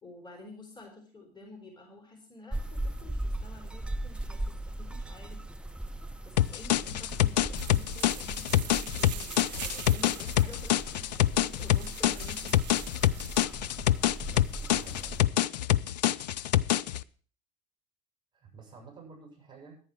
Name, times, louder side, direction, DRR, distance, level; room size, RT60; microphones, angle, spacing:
voice 1, 0.0-5.5 6.2-12.6, left 2 dB, 20° left, 0 dB, 4.1 m, -50 dB
sound 1, 2.5-15.2, right 1 dB, 5° right, 0.8 m, -39 dB
sound 2, 6.4-17.0, left 13 dB, 80° left, 0.5 m, -26 dB
sound 3, 7.5-13.4, right 10 dB, 80° right, 0.6 m, -44 dB
voice 2, 14.5-15.4 18.3-19.8, right 5 dB, 20° right, 1 dB, 6.7 m, -50 dB
11.5 x 9.2 x 6.2 m, 0.44 s
hypercardioid pair, 75°, 21 cm